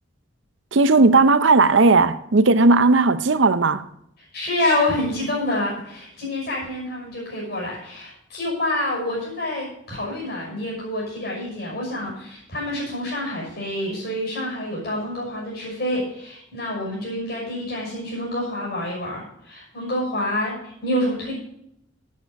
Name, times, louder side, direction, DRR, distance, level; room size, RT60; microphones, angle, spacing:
voice 1, 0.7-3.8, right 3 dB, 65° right, 0.6 m, -16 dB
voice 2, 4.3-21.3, left 1 dB, 50° left, 6.0 m, -27 dB
11.5 x 8.7 x 5.3 m
head